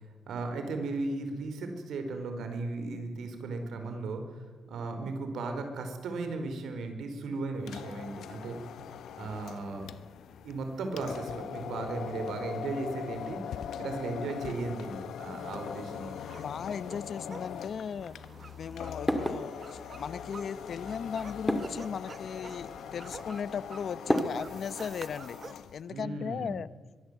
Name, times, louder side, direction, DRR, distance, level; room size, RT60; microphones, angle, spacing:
voice 1, 0.0-8.6 9.1-9.9 10.4-16.1 25.8-26.6, right 3 dB, 85° right, 6 dB, 4.7 m, -36 dB
sound 1, 7.6-25.8, left 9 dB, 85° left, 1.2 m, -42 dB
sound 2, 15.4-25.5, right 4 dB, 35° right, 1.1 m, -50 dB
voice 2, 16.3-18.2 18.6-25.4 25.7-26.7, left 7 dB, 55° left, 17 dB, 0.8 m, -37 dB
sound 3, 17.5-24.8, equal, ahead, 2.4 m, -36 dB
23.0 x 22.0 x 8.2 m, 1.4 s
cardioid pair, 120°, 0 cm